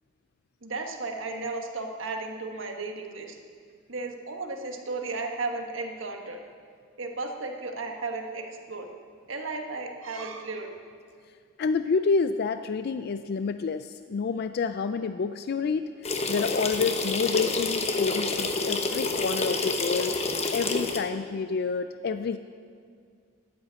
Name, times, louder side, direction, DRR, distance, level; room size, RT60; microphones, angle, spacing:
voice 1, 0.6-3.4 3.9-6.4 7.0-8.9 9.3-10.7, right 3 dB, 75° right, 3 dB, 1.4 m, -34 dB
voice 2, 11.6-15.9 16.3-20.2 20.5-22.4, left 5 dB, 50° left, 10 dB, 0.4 m, -28 dB
sound 1, 16.0-21.0, left 3 dB, 30° left, 1.0 m, -28 dB
11.0 x 9.7 x 8.1 m, 2.1 s
head